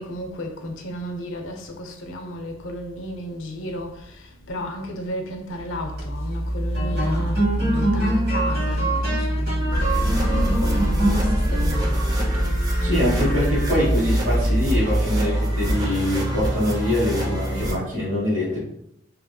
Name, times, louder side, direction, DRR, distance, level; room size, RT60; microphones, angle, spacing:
voice 1, 0.0-12.4, left 1 dB, 85° left, 0.5 m, -33 dB
sound 1, 5.8-15.4, right 1 dB, 55° right, 1.3 m, -24 dB
sound 2, 9.7-17.7, equal, 20° right, 0.5 m, -24 dB
voice 2, 12.8-18.6, left 1 dB, 80° right, 1.3 m, -24 dB
2.8 x 2.7 x 2.3 m
head